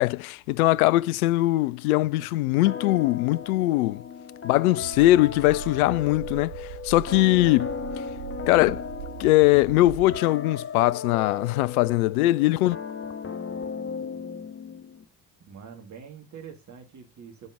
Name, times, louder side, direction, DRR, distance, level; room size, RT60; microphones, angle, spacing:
voice 1, 0.0-4.0 4.4-7.7 8.5-8.8 9.2-12.8, left 17 dB, 65° left, 0.5 m, -21 dB
sound 1, 2.7-15.0, left 6 dB, 25° left, 1.4 m, -36 dB
sound 2, 4.8-10.2, right 14 dB, 70° right, 0.7 m, -40 dB
voice 2, 15.5-17.5, right 7 dB, 35° right, 2.2 m, -44 dB
9.6 x 5.3 x 3.7 m
figure-of-eight pair, 55°, 48 cm